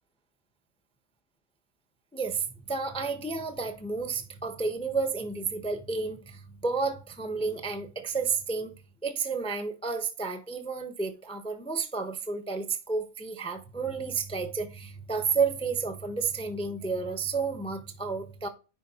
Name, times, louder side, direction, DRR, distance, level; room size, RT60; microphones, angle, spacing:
voice 1, 2.1-8.7 9.0-18.5, right 4 dB, 5° left, 0.5 m, -31 dB
10.0 x 4.1 x 2.8 m
omnidirectional pair, 1.4 m